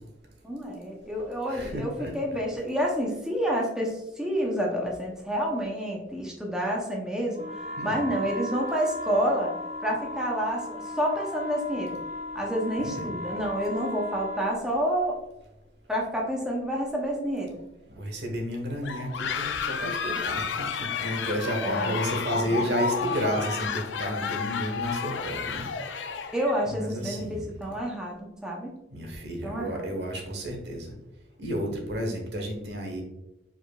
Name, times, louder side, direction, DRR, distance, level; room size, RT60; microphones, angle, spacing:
voice 1, 0.4-9.5 9.8-12.0 12.3-15.2 15.9-17.6 21.6-21.9 22.3-22.8 26.3-28.7 29.4-29.9, equal, 5° right, -2 dB, 0.7 m, -29 dB
voice 2, 1.5-2.1 7.8-8.0 12.8-13.1 17.9-25.6 26.6-27.5 28.9-30.9 31.4-33.0, equal, 70° right, 2 dB, 1.2 m, -32 dB
sound 1, 7.3-14.6, left 1 dB, 35° right, 0.8 m, -36 dB
sound 2, 18.8-26.7, left 6 dB, 80° left, 0.5 m, -31 dB
5.1 x 4.3 x 2.3 m, 0.93 s
head